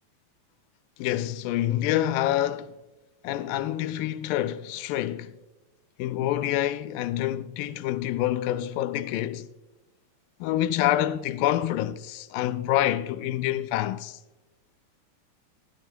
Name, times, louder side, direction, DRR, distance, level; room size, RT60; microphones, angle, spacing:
voice 1, 1.0-2.7 3.2-5.3 6.0-9.5 10.4-14.2, left 13 dB, 85° left, 2.2 m, -27 dB
14.0 x 12.0 x 2.2 m
omnidirectional pair, 3.9 m